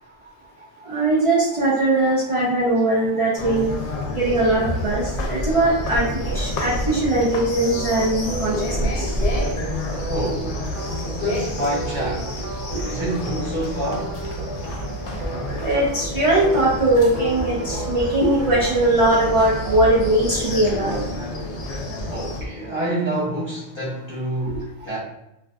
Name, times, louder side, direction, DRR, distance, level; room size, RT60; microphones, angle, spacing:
voice 1, 0.8-3.7 4.1-8.5 8.8-9.2 15.6-21.2 24.4-24.5, right 2 dB, 45° right, -6 dB, 0.4 m, -20 dB
sound 1, 3.4-22.4, left 1 dB, 75° left, 0.8 m, -29 dB
sound 2, 7.7-20.4, right 3 dB, 65° right, 0.8 m, -35 dB
voice 2, 10.0-12.4 12.8-14.2 22.1-25.0, right 1 dB, 25° left, -7 dB, 0.8 m, -28 dB
2.5 x 2.4 x 2.2 m, 0.87 s
omnidirectional pair, 1.2 m